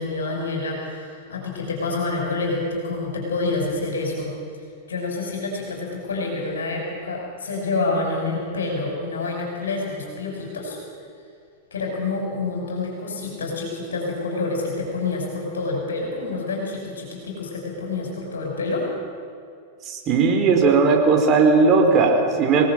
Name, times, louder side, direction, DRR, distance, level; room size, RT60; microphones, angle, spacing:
voice 1, 0.0-4.3 4.9-10.8 11.7-18.9, left 3 dB, 75° left, 1 dB, 5.9 m, -27 dB
voice 2, 19.9-22.7, right 4 dB, 35° right, 3 dB, 4.7 m, -17 dB
26.0 x 18.5 x 7.7 m, 2.4 s
figure-of-eight pair, 95°, 0 cm